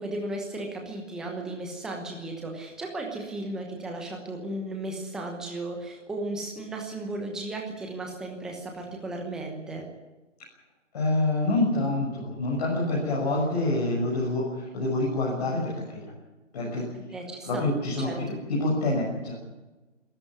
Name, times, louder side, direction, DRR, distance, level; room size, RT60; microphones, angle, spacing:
voice 1, 0.0-9.9 17.1-17.6 18.0-18.2, right 2 dB, ahead, 1 dB, 1.0 m, -35 dB
voice 2, 10.9-16.1 16.5-16.9 17.4-18.1 18.5-19.4, left 2 dB, 30° left, -5 dB, 6.3 m, -26 dB
22.5 x 13.5 x 9.7 m, 1.1 s
figure-of-eight pair, 160°, 38 cm